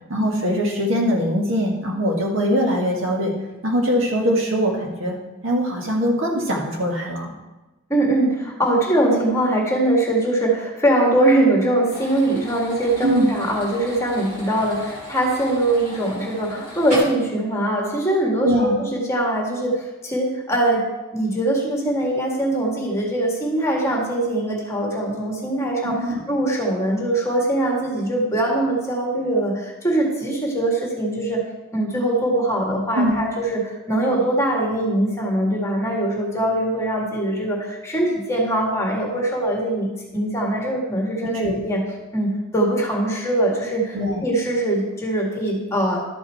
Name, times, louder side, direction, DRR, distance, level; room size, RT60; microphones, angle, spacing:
voice 1, 0.1-3.3 3.6-5.1 5.4-7.3 13.0-13.3 18.4-18.8 25.8-26.2 33.0-33.2 41.3-41.6 43.9-44.2, equal, 80° right, -1 dB, 1.8 m, -22 dB
voice 2, 7.9-20.9 21.1-31.4 31.7-39.9 40.1-41.8 42.1-44.0 44.2-46.1, right 1 dB, 15° left, -1 dB, 1.7 m, -22 dB
sound 1, 11.9-17.0, equal, 45° right, 3.2 m, -37 dB
12.0 x 5.4 x 4.5 m, 1.1 s
head